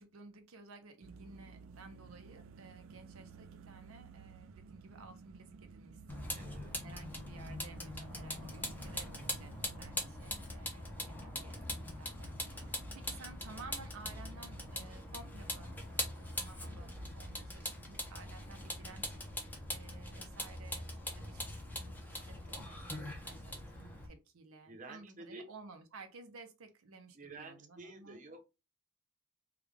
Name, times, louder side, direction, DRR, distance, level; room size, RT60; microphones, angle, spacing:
voice 1, 0.0-12.3 12.6-19.1 19.7-28.2, right 3 dB, 85° right, 0.7 m, -55 dB
sound 1, 1.0-9.9, right 5 dB, 70° right, 0.3 m, -54 dB
Vehicle, 6.1-24.1, left 1 dB, 10° left, 0.7 m, -42 dB
voice 2, 6.3-6.7 24.6-25.4 27.1-28.5, right 3 dB, 40° right, 0.8 m, -50 dB
3.5 x 2.3 x 3.4 m
head